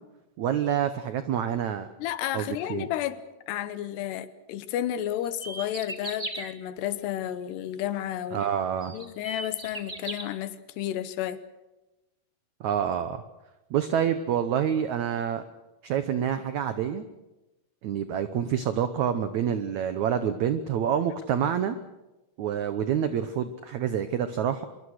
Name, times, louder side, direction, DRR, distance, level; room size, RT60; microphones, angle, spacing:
voice 1, 0.4-1.9 2.3-2.9 8.3-9.0 12.6-13.2 13.7-15.4 15.8-17.0 17.8-21.8 22.4-24.6, right 9 dB, 85° right, 1.6 m, -27 dB
voice 2, 2.0-8.5 8.9-11.4, left 12 dB, 85° left, 3.2 m, -32 dB
sound 1, 5.2-6.5 8.2-8.3 8.8-10.2, right 2 dB, 25° right, 0.9 m, -36 dB
24.5 x 23.0 x 6.5 m
omnidirectional pair, 4.7 m